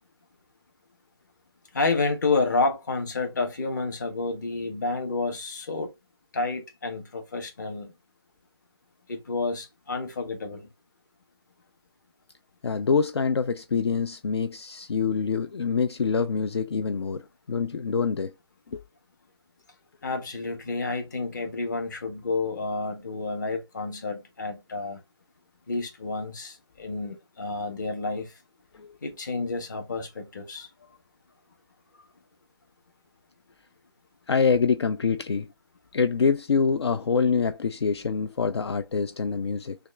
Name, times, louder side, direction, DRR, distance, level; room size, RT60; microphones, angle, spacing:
voice 1, 1.7-5.9 6.3-7.9 9.1-10.7 20.0-25.0 25.7-28.3 29.0-30.7, left 3 dB, 40° left, 1.2 m, -30 dB
voice 2, 12.6-17.2 17.5-18.3 18.7-18.8 28.7-29.0 34.3-35.5 35.9-39.8, left 5 dB, 70° left, 0.4 m, -25 dB
6.2 x 2.4 x 3.2 m
figure-of-eight pair, 165°, 14 cm